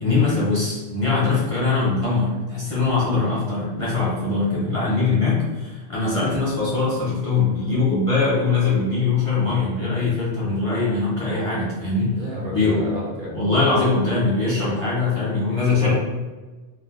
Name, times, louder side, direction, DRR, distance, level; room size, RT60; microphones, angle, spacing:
voice 1, 0.0-12.2 12.5-12.8 13.3-15.9, left 3 dB, 35° left, -8 dB, 0.6 m, -22 dB
voice 2, 12.2-13.3 15.7-15.9, equal, 55° right, -4 dB, 0.8 m, -31 dB
2.4 x 2.2 x 3.6 m, 1.2 s
omnidirectional pair, 1.2 m